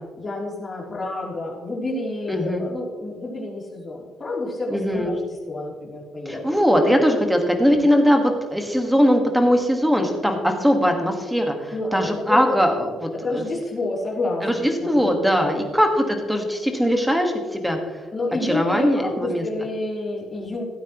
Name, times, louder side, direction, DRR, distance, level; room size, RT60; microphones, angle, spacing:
voice 1, 0.2-5.2 5.5-6.6 7.6-7.8 11.7-12.6 13.1-15.1 15.4-15.7 18.1-20.6, left 2 dB, 25° left, -3 dB, 3.2 m, -29 dB
voice 2, 2.3-2.6 4.7-5.1 6.2-12.9 13.3-13.4 14.4-17.8 18.5-19.4, equal, ahead, 4 dB, 1.6 m, -20 dB
16.0 x 8.9 x 3.1 m, 1.4 s
cardioid pair, 135°, 0 cm